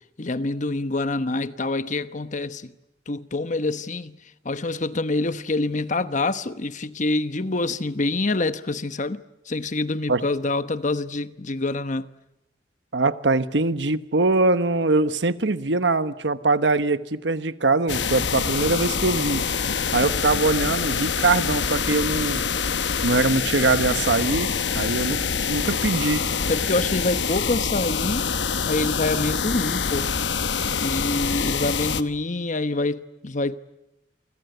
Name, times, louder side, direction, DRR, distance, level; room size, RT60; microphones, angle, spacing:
voice 1, 0.2-2.7 3.1-4.2 4.4-12.1 26.5-28.3 28.7-30.1 30.8-33.6, left 2 dB, 45° left, 1.0 m, -26 dB
voice 2, 12.9-19.4 19.9-22.4 23.0-25.2 25.5-26.2, right 3 dB, 85° right, 1.2 m, -22 dB
sound 1, 17.9-32.0, left 6 dB, 80° left, 1.1 m, -25 dB
28.5 x 25.0 x 8.0 m
head